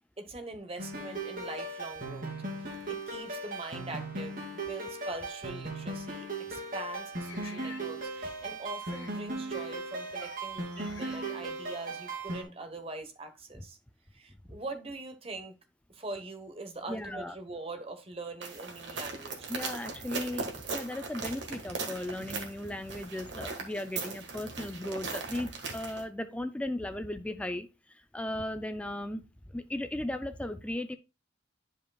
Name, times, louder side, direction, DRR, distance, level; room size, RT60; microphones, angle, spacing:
voice 1, 0.2-2.3 2.9-13.8 14.1-15.6 15.9-19.5, right 2 dB, 30° right, 1.1 m, -43 dB
sound 1, 0.8-12.4, right 2 dB, 45° right, 2.6 m, -38 dB
sound 2, 7.2-7.9 8.8-9.1 9.5-9.8 10.0-10.4 10.7-11.4, left 5 dB, 75° left, 1.1 m, -49 dB
voice 2, 16.9-17.3 19.5-31.0, left 1 dB, 5° left, 0.4 m, -36 dB
sound 3, 18.4-26.0, right 4 dB, 65° right, 1.6 m, -39 dB
11.0 x 5.1 x 2.3 m
head